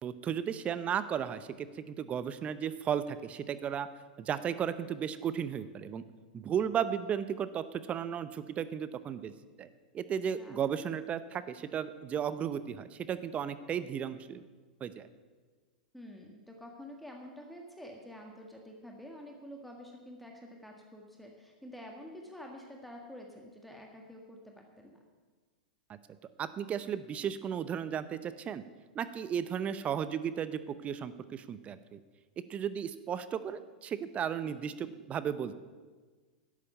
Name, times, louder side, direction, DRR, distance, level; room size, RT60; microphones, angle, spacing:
voice 1, 0.0-3.9 4.2-6.0 6.3-9.3 9.6-9.7 9.9-14.4 14.8-15.1 25.9-26.0 26.4-28.6 28.9-32.0 32.4-35.5, right 8 dB, 25° right, 13 dB, 0.7 m, -35 dB
voice 2, 15.9-25.0 34.4-34.6, equal, ahead, 1 dB, 1.6 m, -48 dB
11.5 x 8.6 x 8.0 m, 1.4 s
hypercardioid pair, 105°, 5 cm